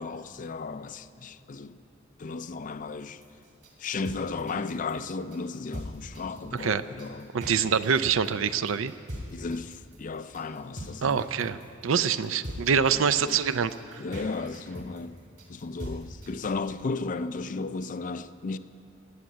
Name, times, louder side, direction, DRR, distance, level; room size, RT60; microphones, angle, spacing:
voice 1, 0.0-1.8 2.2-3.2 3.8-7.3 9.3-11.6 12.9-13.4 14.0-15.2 15.5-18.6, left 4 dB, 40° left, 0.5 m, -35 dB
sound 1, 3.2-16.6, equal, 55° right, 3.5 m, -41 dB
voice 2, 7.3-8.9 11.0-11.6 11.8-13.7, right 7 dB, 75° right, 0.5 m, -25 dB
18.0 x 7.4 x 9.4 m
head